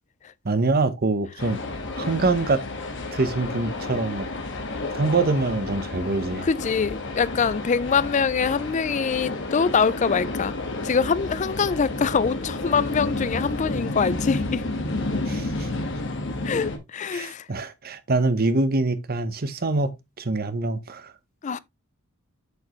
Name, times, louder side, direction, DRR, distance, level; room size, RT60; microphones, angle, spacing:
voice 1, 0.4-1.6 2.0-2.6 3.1-4.3 4.9-6.5 15.3-15.7 17.1-21.1, right 3 dB, 45° right, 0.8 m, -24 dB
sound 1, 1.4-16.8, left 2 dB, 55° left, 1.5 m, -31 dB
voice 2, 6.4-10.5 10.8-14.6 16.4-17.4 21.4-21.6, left 5 dB, 35° left, 0.3 m, -24 dB
7.9 x 5.2 x 3.0 m
head